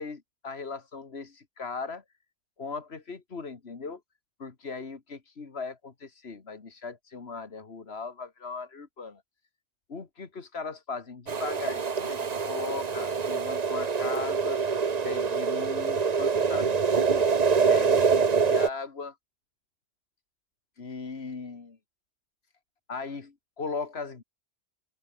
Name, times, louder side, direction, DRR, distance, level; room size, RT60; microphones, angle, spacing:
voice 1, 0.0-2.0 2.6-4.0 4.4-9.2 9.9-14.6 15.0-17.3 17.7-19.2 20.8-21.8 22.9-24.2, left 4 dB, 60° left, 2.2 m, -38 dB
sound 1, 11.3-18.7, right 5 dB, 40° right, 1.0 m, -25 dB
open air
omnidirectional pair, 1.2 m